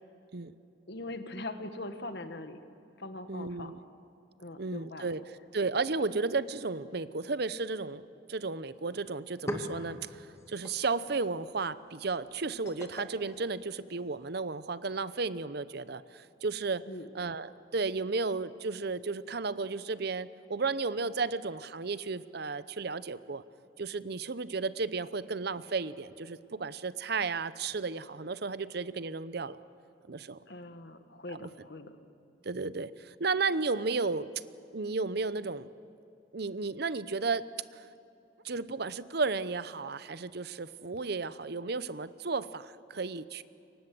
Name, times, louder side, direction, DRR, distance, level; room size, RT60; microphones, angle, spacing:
voice 1, 0.9-2.6 3.0-3.7 4.4-5.1 16.9-17.1 30.5-32.0, left 2 dB, 60° left, 9 dB, 1.7 m, -41 dB
voice 2, 3.3-3.8 4.6-5.2 5.5-16.9 17.1-23.4 23.8-29.6 30.1-30.4 31.3-31.5 32.4-34.3 34.7-35.7 36.3-37.9 38.4-43.4, right 4 dB, 55° right, 15 dB, 0.8 m, -33 dB
sound 1, 8.8-8.9 9.1-14.3, left 1 dB, 15° left, 2.2 m, -44 dB
29.5 x 24.0 x 7.7 m, 2.7 s
head